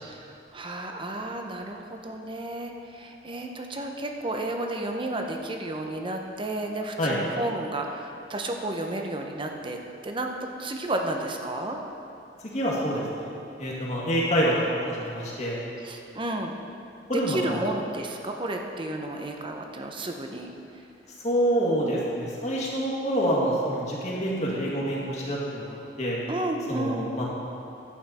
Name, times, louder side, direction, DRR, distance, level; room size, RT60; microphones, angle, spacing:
voice 1, 0.0-11.8 15.8-16.6 17.1-20.5 26.3-27.1, right 1 dB, 30° right, 3 dB, 0.8 m, -32 dB
voice 2, 12.4-13.3 13.6-15.6 17.1-17.6 21.2-26.2 26.7-27.2, equal, 40° left, -5 dB, 2.1 m, -27 dB
11.0 x 8.5 x 4.2 m, 2.7 s
head